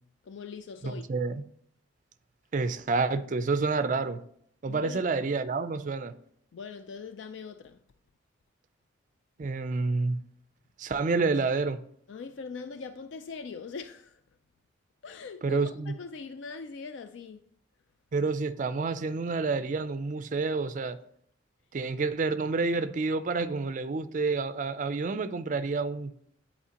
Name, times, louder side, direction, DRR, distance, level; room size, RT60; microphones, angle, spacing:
voice 1, 0.2-1.0 4.7-5.0 6.5-7.8 12.1-14.2 15.0-17.4, left 5 dB, 65° left, 0.3 m, -41 dB
voice 2, 0.8-1.3 2.5-4.2 4.6-6.1 9.4-10.2 10.8-11.8 15.4-15.9 18.1-21.0 21.7-26.1, right 4 dB, 40° right, 0.4 m, -29 dB
9.9 x 4.2 x 2.9 m
head